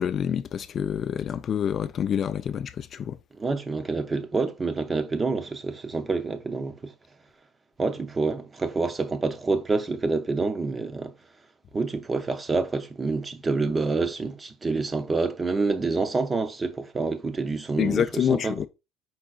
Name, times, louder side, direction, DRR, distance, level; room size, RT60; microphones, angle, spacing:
voice 1, 0.0-3.2 17.8-18.7, left 8 dB, 45° left, 0.3 m, -27 dB
voice 2, 3.4-6.9 7.8-11.1 11.7-18.5, right 3 dB, 25° right, 0.6 m, -27 dB
4.7 x 3.8 x 2.4 m
supercardioid pair, 80°, 0 cm